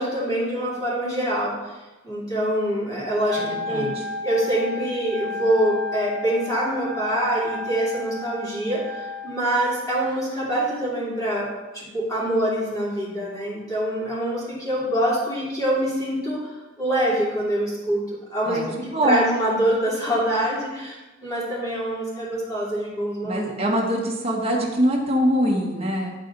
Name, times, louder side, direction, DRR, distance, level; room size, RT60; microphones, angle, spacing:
voice 1, 0.0-3.9 4.2-16.5 16.8-18.7 19.0-23.4, right 1 dB, 20° left, -7 dB, 2.8 m, -25 dB
Wind instrument woodwind instrument, 3.3-9.4, left 3 dB, 50° right, 0.8 m, -33 dB
voice 2, 3.5-4.0 18.4-19.3 23.2-26.1, equal, 35° right, -2 dB, 1.4 m, -23 dB
11.0 x 4.2 x 4.0 m, 1.1 s
head